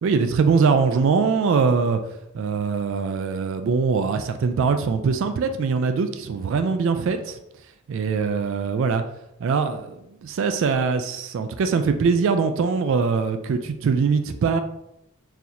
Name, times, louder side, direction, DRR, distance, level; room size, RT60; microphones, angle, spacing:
voice 1, 0.0-2.0 2.3-7.4 7.9-9.0 9.4-14.6, right 5 dB, 60° right, 8 dB, 0.3 m, -22 dB
3.9 x 2.6 x 2.9 m, 0.82 s
head